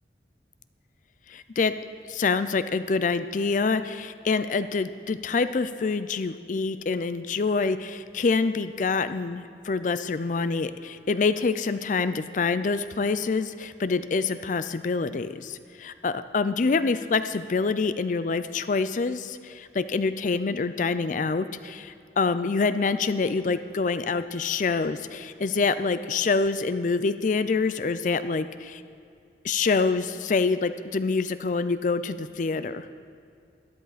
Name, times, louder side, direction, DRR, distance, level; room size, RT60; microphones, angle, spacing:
voice 1, 1.3-1.7 2.1-28.8 29.4-32.9, left 4 dB, 45° left, 12 dB, 0.4 m, -26 dB
13.0 x 10.5 x 4.1 m, 2.4 s
head